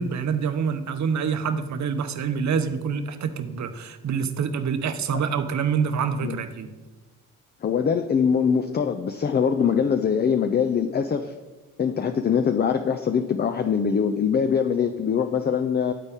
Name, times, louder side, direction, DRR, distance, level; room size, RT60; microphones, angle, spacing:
voice 1, 0.0-6.7, right 6 dB, 50° right, 9 dB, 0.7 m, -26 dB
voice 2, 7.6-11.3 11.8-15.9, left 7 dB, 30° left, 8 dB, 0.4 m, -23 dB
9.9 x 4.0 x 3.5 m, 1.2 s
hypercardioid pair, 40°, 36 cm